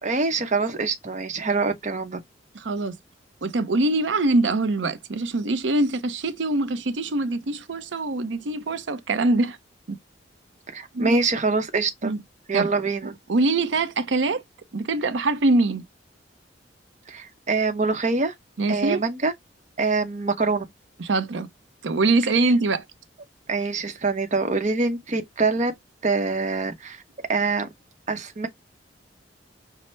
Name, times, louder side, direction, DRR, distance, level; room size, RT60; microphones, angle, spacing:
voice 1, 0.0-2.2 10.7-12.1 12.5-13.1 17.1-18.3 18.7-19.3 19.8-20.6 23.5-25.7 26.0-27.0 27.3-27.7 28.1-28.5, right 3 dB, 40° right, 0.8 m, -24 dB
voice 2, 2.5-3.0 3.4-9.6 9.9-10.0 10.9-11.1 12.0-12.2 12.5-12.7 13.3-14.4 14.7-15.8 18.6-19.0 21.0-21.5 21.8-22.8, right 2 dB, 85° right, 0.6 m, -23 dB
5.4 x 2.1 x 3.1 m
head